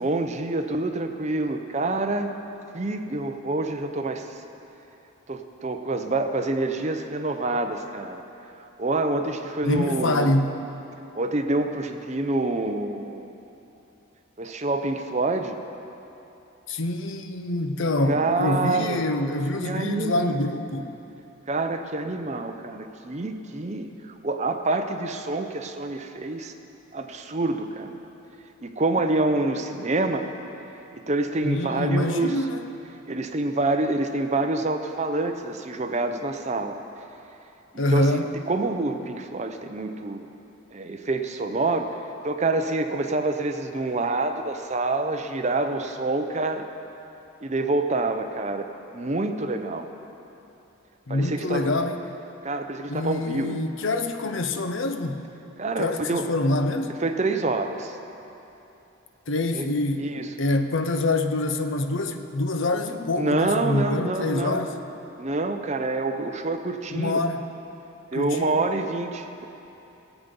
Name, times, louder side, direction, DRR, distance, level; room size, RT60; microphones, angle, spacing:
voice 1, 0.0-2.3 2.7-4.4 5.3-8.2 8.8-10.3 11.1-13.3 14.4-15.6 18.1-19.0 19.6-20.4 21.5-26.5 26.9-28.0 28.6-30.3 30.9-32.4 33.1-36.8 37.7-40.3 40.7-42.0 42.2-46.7 47.4-48.7 48.9-49.9 51.1-51.7 52.4-53.6 55.6-56.3 57.0-58.0 59.5-59.7 60.0-60.3 63.2-64.7 65.2-67.2 68.1-69.5, right 2 dB, 35° right, 6 dB, 0.6 m, -27 dB
voice 2, 9.6-10.6 16.7-20.9 31.4-32.6 37.8-38.3 51.1-52.0 52.9-55.3 55.8-57.0 59.3-60.1 60.4-64.7 66.9-67.4 68.1-68.6, left 2 dB, 65° left, 7 dB, 0.7 m, -25 dB
16.5 x 8.2 x 5.4 m, 2.9 s
head